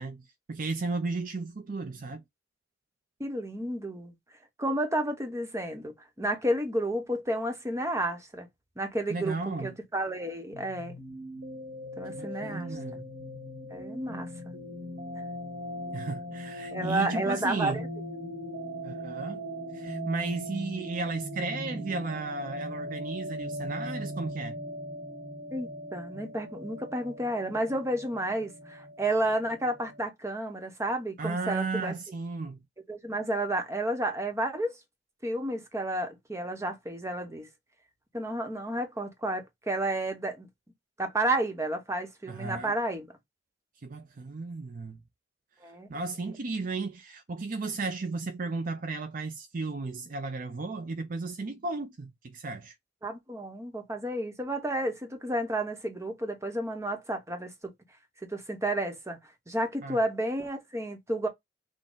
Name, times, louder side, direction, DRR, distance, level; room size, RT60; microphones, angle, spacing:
voice 1, 0.0-2.2 9.1-9.7 12.1-13.1 15.9-17.8 18.8-19.4 19.7-24.6 31.2-32.6 42.3-42.8 43.8-45.0 45.9-52.7 59.8-60.0, right 3 dB, 50° right, 0.5 m, -34 dB
voice 2, 3.2-4.1 4.6-8.5 8.8-11.0 12.0-12.7 13.7-14.5 16.7-17.9 25.5-31.9 32.9-34.8 35.2-37.5 38.1-40.5 41.0-43.1 45.6-45.9 53.0-57.5 58.3-59.2 59.5-61.3, right 1 dB, 15° right, 1.0 m, -31 dB
sound 1, 10.5-30.0, equal, 70° right, 1.4 m, -39 dB
6.2 x 2.2 x 3.7 m
head